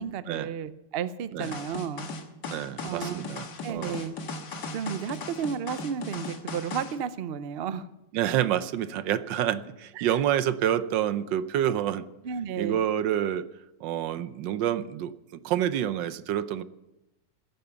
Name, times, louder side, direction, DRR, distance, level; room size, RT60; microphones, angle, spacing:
voice 1, 0.0-2.1 2.8-3.3 3.6-4.2 4.7-7.9 10.0-10.2 12.2-12.8, right 7 dB, 70° right, 13 dB, 0.5 m, -33 dB
sound 1, 1.4-7.0, left 3 dB, 70° left, 2.0 m, -37 dB
voice 2, 2.5-4.0 8.1-12.0 12.6-13.5 13.8-15.1 15.4-16.6, right 11 dB, 85° right, 14 dB, 1.4 m, -28 dB
16.0 x 10.5 x 6.9 m, 0.96 s
omnidirectional pair, 1.9 m